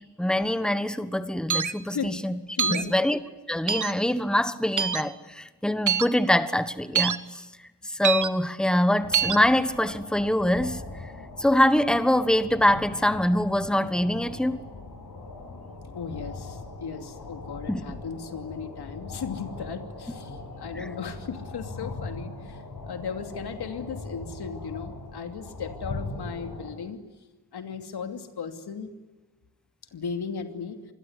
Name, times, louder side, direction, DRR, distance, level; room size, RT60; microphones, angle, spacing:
voice 1, 0.2-2.4 2.7-3.2 3.5-7.4 7.8-10.8 11.4-14.6 17.7-17.8 20.7-20.9, left 1 dB, ahead, 12 dB, 1.3 m, -24 dB
sound 1, 1.5-1.7 2.6-2.8 3.7-3.9 4.8-5.0 5.9-6.1 6.9-7.2 8.0-8.3 9.1-9.4, right 7 dB, 50° right, 1.3 m, -24 dB
voice 2, 2.5-2.9 15.9-27.0 27.5-28.9 29.9-30.8, left 6 dB, 85° left, 7 dB, 2.8 m, -36 dB
sound 2, 9.0-26.7, left 3 dB, 60° left, 7.5 m, -40 dB
27.0 x 21.0 x 9.8 m, 1.2 s
wide cardioid pair, 130°, 38 cm